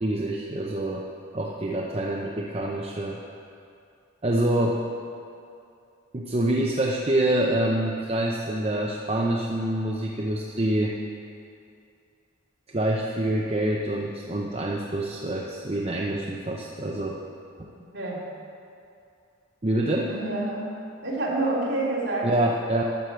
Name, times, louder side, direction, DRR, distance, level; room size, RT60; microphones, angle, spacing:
voice 1, 0.0-1.1 1.3-3.2 4.2-4.8 6.1-11.0 12.7-17.2 17.6-17.7 19.6-20.1 22.2-22.8, right 1 dB, 30° right, -2 dB, 0.7 m, -26 dB
voice 2, 17.7-18.2 20.1-20.7 21.0-22.3, right 2 dB, 55° right, -7 dB, 3.4 m, -28 dB
12.5 x 6.5 x 7.5 m, 2.6 s
head